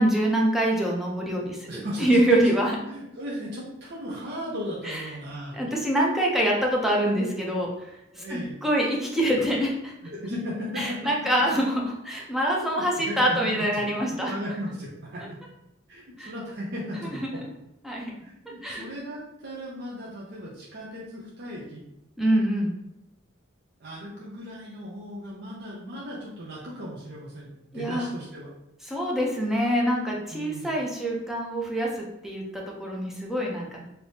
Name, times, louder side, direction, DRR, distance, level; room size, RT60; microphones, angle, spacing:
voice 1, 0.0-1.7 2.0-2.8 4.8-5.0 5.5-9.9 10.8-14.3 16.2-16.3 17.2-17.3 17.8-18.1 18.6-18.9 22.2-22.7 27.7-28.1 28.9-33.8, right 1 dB, ahead, -3 dB, 0.6 m, -25 dB
voice 2, 1.7-2.1 2.8-5.7 8.1-8.5 10.0-11.0 12.7-15.4 15.9-17.4 18.2-21.8 23.8-28.5 30.3-30.7, equal, 55° right, -5 dB, 0.6 m, -36 dB
3.4 x 2.8 x 2.7 m, 0.87 s
head